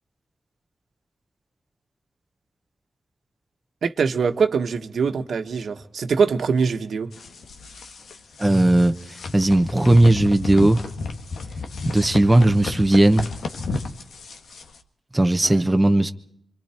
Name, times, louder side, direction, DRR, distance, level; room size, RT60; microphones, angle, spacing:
voice 1, 3.8-7.1 15.4-15.6, right 5 dB, 65° right, 1.5 m, -23 dB
sound 1, 7.1-14.8, left 3 dB, 75° left, 2.0 m, -32 dB
voice 2, 8.4-10.8 11.9-13.3 15.1-16.1, right 1 dB, 10° right, 1.1 m, -17 dB
27.5 x 25.0 x 4.5 m
wide cardioid pair, 135°, 0 cm